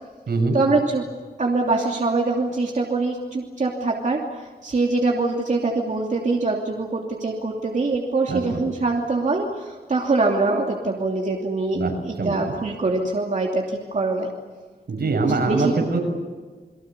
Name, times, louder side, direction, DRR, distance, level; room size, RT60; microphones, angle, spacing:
voice 1, 0.5-1.0 1.4-4.2 4.6-14.3 15.5-15.9, right 3 dB, 50° right, -1 dB, 2.9 m, -23 dB
voice 2, 8.3-8.6 11.7-12.3 14.9-16.0, right 3 dB, 80° right, 2 dB, 7.1 m, -23 dB
29.5 x 23.0 x 6.9 m, 1.4 s
wide cardioid pair, 130°, 17 cm